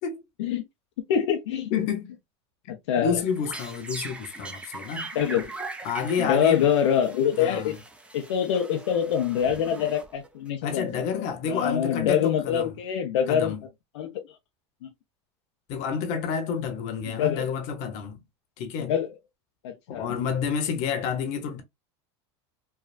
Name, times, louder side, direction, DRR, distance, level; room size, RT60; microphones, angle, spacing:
voice 1, 1.1-1.6 2.9-3.2 5.1-5.5 6.2-7.8 8.1-11.0 11.5-13.5 13.9-14.2 14.8-14.9 17.1-17.5 18.8-19.1 19.6-20.1, left 8 dB, 85° left, 0.6 m, -25 dB
voice 2, 1.7-2.1 2.7-5.1 5.8-6.7 7.4-7.8 10.6-12.7 13.3-13.6 15.7-18.2 18.6-18.9 19.9-21.6, left 6 dB, 60° left, 0.9 m, -29 dB
sound 1, 3.2-10.5, right 3 dB, 10° right, 0.6 m, -41 dB
3.3 x 2.3 x 2.4 m
supercardioid pair, 115°, 14 cm